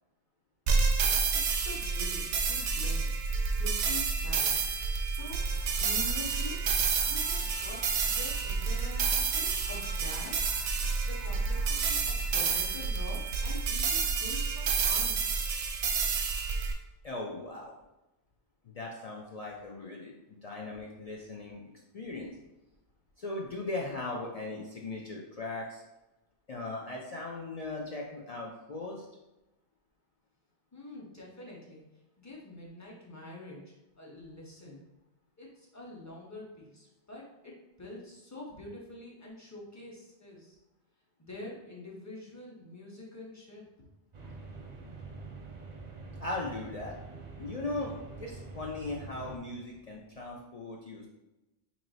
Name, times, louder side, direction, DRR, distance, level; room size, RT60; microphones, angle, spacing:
sound 1, 0.7-16.7, right 5 dB, 90° right, 0.9 m, -29 dB
voice 1, 1.3-3.1 3.5-4.7 5.0-6.6 7.1-10.5 11.1-15.2 30.7-31.8 32.2-34.8 35.4-40.6 41.2-43.6, left 2 dB, 20° left, -3 dB, 0.6 m, -46 dB
sound 2, 5.2-12.8, right 1 dB, 80° left, 2.0 m, -48 dB
voice 2, 17.0-17.7 18.6-20.1 20.4-22.3 23.2-25.8 26.5-29.1 46.2-46.9 47.4-51.1, left 2 dB, 55° left, -1 dB, 0.4 m, -38 dB
sound 3, 44.1-49.4, right 3 dB, 50° right, 0.6 m, -45 dB
3.0 x 2.8 x 3.9 m, 0.99 s
omnidirectional pair, 1.1 m